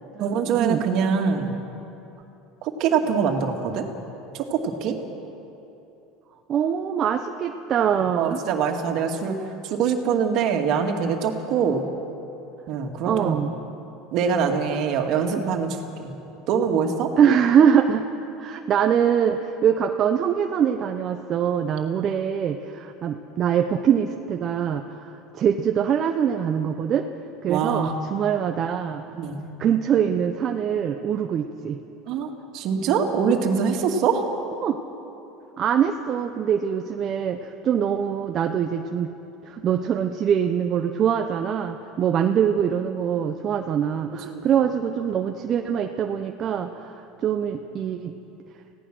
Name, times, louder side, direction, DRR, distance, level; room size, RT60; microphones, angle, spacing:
voice 1, 0.2-1.5 2.6-3.9 4.3-5.0 8.2-11.8 12.7-13.4 14.1-16.1 16.5-17.1 27.5-27.9 29.1-29.4 32.1-34.3 44.2-44.5, right 6 dB, 55° right, 3 dB, 2.4 m, -24 dB
voice 2, 6.5-8.4 13.1-13.5 17.2-18.1 18.4-27.1 27.4-29.0 29.6-31.8 34.6-34.8 35.6-39.1 39.5-46.9 47.2-48.1, right 8 dB, 40° right, 5 dB, 0.9 m, -23 dB
27.5 x 17.0 x 6.3 m, 3.0 s
supercardioid pair, 115°, 0 cm